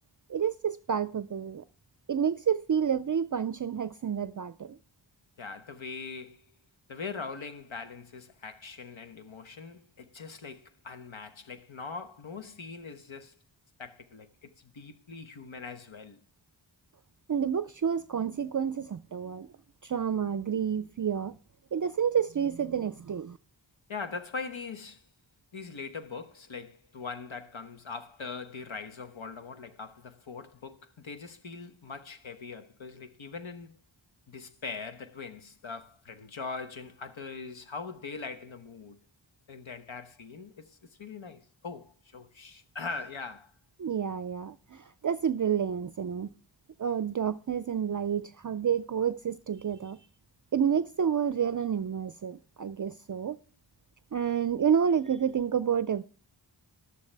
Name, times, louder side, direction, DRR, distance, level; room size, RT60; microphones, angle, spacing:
voice 1, 0.3-1.6 2.1-4.8 17.3-19.5 19.8-21.4 21.7-23.4 43.8-46.3 46.8-50.0 50.5-53.4 54.1-56.0, right 8 dB, 45° right, 0.4 m, -29 dB
voice 2, 5.4-6.4 6.9-13.4 13.8-16.2 23.9-25.1 25.5-33.8 34.3-39.0 39.5-43.5, left 4 dB, 85° left, 1.2 m, -41 dB
12.5 x 11.5 x 3.3 m
wide cardioid pair, 45°, 45 cm